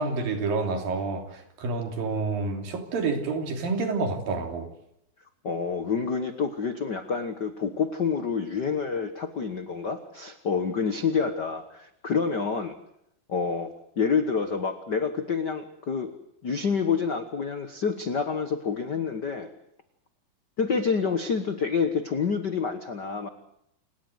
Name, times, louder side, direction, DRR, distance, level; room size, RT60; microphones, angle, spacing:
voice 1, 0.0-4.7, right 3 dB, 75° right, 5 dB, 4.8 m, -28 dB
voice 2, 5.4-12.8 13.3-13.7 14.0-16.1 16.4-19.5 20.6-23.3, left 5 dB, 75° left, 9 dB, 0.9 m, -28 dB
29.0 x 18.0 x 8.0 m, 0.77 s
omnidirectional pair, 4.1 m